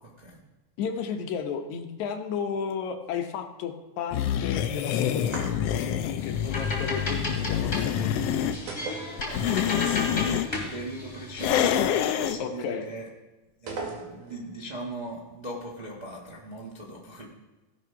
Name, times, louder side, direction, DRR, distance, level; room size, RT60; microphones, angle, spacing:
voice 1, 0.0-0.4 9.2-10.4 10.7-13.1 13.6-17.2, right 1 dB, 65° right, -3 dB, 0.4 m, -39 dB
voice 2, 0.8-8.3 12.4-12.9, left 7 dB, 75° left, 6 dB, 2.2 m, -34 dB
sound 1, 4.1-8.6 9.2-10.5 11.4-12.4, left 10 dB, 90° left, 1.3 m, -27 dB
sound 2, 5.2-6.0 8.7-9.7 10.0-10.1 13.7-14.5, right 3 dB, 85° right, 3.5 m, -38 dB
sound 3, 6.2-11.9, left 2 dB, 25° left, 2.9 m, -35 dB
16.5 x 6.1 x 5.7 m, 1.2 s
omnidirectional pair, 3.5 m